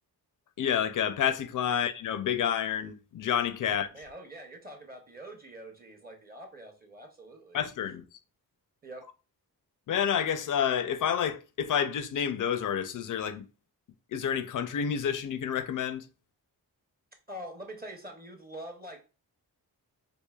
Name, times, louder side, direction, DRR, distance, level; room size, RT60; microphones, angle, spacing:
voice 1, 0.6-3.9 7.5-8.0 9.9-13.5 14.1-16.0, left 8 dB, 55° left, 0.5 m, -29 dB
voice 2, 3.7-7.6 8.8-9.1 17.3-19.0, right 1 dB, 25° right, 0.8 m, -45 dB
4.6 x 2.6 x 2.3 m
wide cardioid pair, 120°, 38 cm